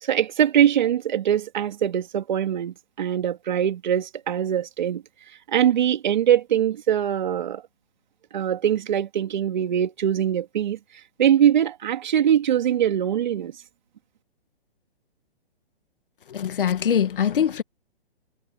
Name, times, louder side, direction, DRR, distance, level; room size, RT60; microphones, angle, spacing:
voice 1, 0.0-5.0 5.5-7.6 8.3-10.8 11.2-13.5, right 10 dB, 45° right, 2.8 m, -22 dB
voice 2, 16.3-17.6, left 8 dB, 55° left, 1.9 m, -23 dB
hypercardioid pair, 170°, 31 cm